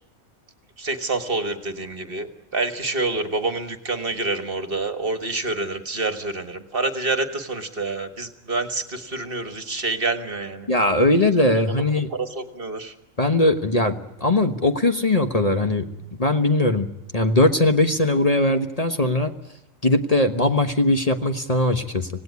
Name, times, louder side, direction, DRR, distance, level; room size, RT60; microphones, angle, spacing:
voice 1, 0.8-2.3 2.5-10.7 11.5-11.6 12.1-12.9, right 3 dB, 45° right, 8 dB, 1.8 m, -27 dB
voice 2, 10.7-12.1 13.2-15.9 16.2-16.9 17.1-19.3 19.8-22.1, left 2 dB, 30° left, 6 dB, 1.3 m, -20 dB
26.5 x 18.0 x 9.6 m, 0.91 s
omnidirectional pair, 1.3 m